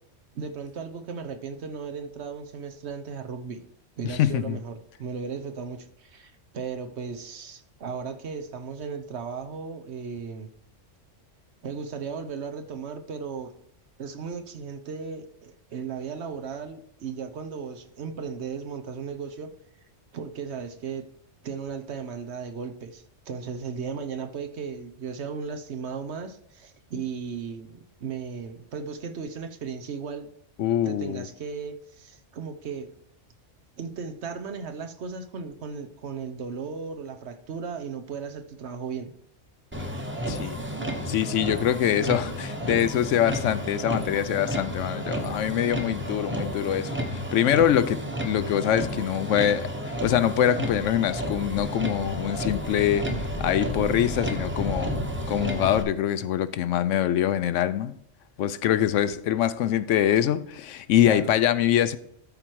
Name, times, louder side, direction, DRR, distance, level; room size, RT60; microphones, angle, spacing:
voice 1, 0.3-3.6 4.0-10.5 11.6-13.5 14.0-19.5 20.1-21.0 21.4-30.3 30.8-32.9 33.8-39.1 39.9-40.5 61.1-61.3, right 5 dB, 65° right, 1.1 m, -36 dB
voice 2, 4.0-4.6 30.6-31.3 40.3-40.6 41.1-53.1 53.4-54.9 55.3-58.0 58.4-62.0, left 10 dB, 80° left, 0.9 m, -24 dB
Motor vehicle (road), 39.7-55.8, equal, 10° right, 1.1 m, -31 dB
13.0 x 4.5 x 4.6 m
omnidirectional pair, 1.3 m